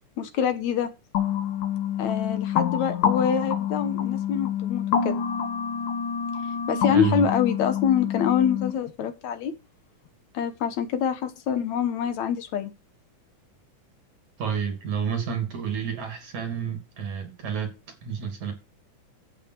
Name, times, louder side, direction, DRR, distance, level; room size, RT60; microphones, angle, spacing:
voice 1, 0.2-0.9 2.0-5.3 6.7-9.5 10.3-12.7, left 8 dB, 70° left, 2.3 m, -25 dB
sound 1, 1.1-8.7, left 9 dB, 85° left, 3.3 m, -27 dB
voice 2, 6.9-7.3 14.4-17.7 18.0-18.5, right 7 dB, 65° right, 4.2 m, -29 dB
10.5 x 8.4 x 4.7 m
omnidirectional pair, 3.7 m